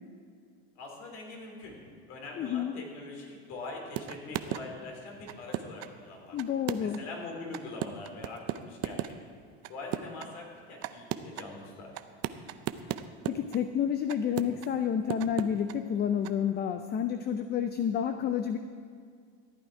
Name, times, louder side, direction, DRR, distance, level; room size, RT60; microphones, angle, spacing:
voice 1, 0.7-1.8 2.1-6.4 6.8-9.1 9.7-11.9, left 2 dB, 55° left, 0 dB, 3.4 m, -43 dB
voice 2, 2.4-2.7 6.3-7.0 13.3-18.6, left 8 dB, 35° left, 8 dB, 0.5 m, -30 dB
sound 1, 4.0-4.6 5.3-5.9 6.4-7.1 7.5-9.1 9.6-10.3 10.8-11.5 11.9-13.6 14.1-14.7 15.1-15.8 16.2-16.3, right 14 dB, 55° right, 0.6 m, -35 dB
14.0 x 9.0 x 4.7 m, 2.2 s
supercardioid pair, 115°, 30 cm